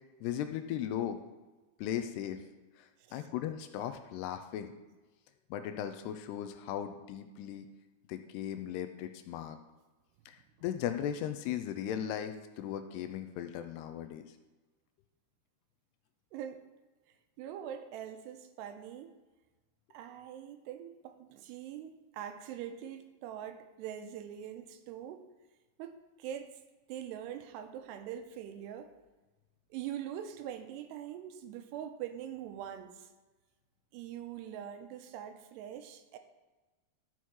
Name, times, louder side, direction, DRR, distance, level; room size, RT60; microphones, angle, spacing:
voice 1, 0.2-1.2 1.8-2.4 2.8-4.7 5.5-7.7 8.1-9.6 10.3-14.3, left 10 dB, 80° left, 8 dB, 2.4 m, -37 dB
voice 2, 16.3-16.7 17.4-19.1 19.9-25.2 25.8-26.5 26.9-28.9 29.7-33.1 33.9-36.2, right 10 dB, 80° right, 7 dB, 2.7 m, -43 dB
12.5 x 5.7 x 4.6 m, 1.2 s
omnidirectional pair, 5.1 m